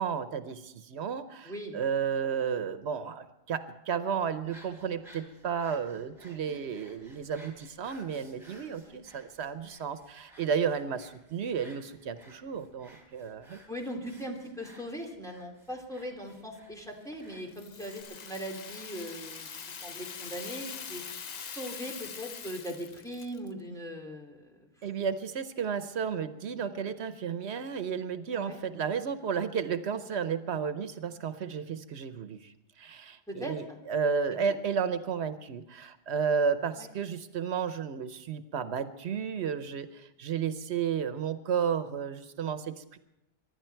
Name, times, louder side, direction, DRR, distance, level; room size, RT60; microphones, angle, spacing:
voice 1, 0.0-13.6 24.8-43.0, right 6 dB, 85° right, 11 dB, 1.0 m, -32 dB
voice 2, 1.4-1.8 8.8-9.0 13.7-21.0 21.4-24.7 28.3-28.6 33.3-33.8 36.8-36.9, equal, 5° left, 0 dB, 2.5 m, -40 dB
sound 1, 4.4-18.0, equal, 25° right, 3.4 m, -57 dB
Rattle (instrument), 17.5-23.5, left 6 dB, 45° left, 0.7 m, -43 dB
24.5 x 11.0 x 4.5 m, 0.90 s
omnidirectional pair, 1.1 m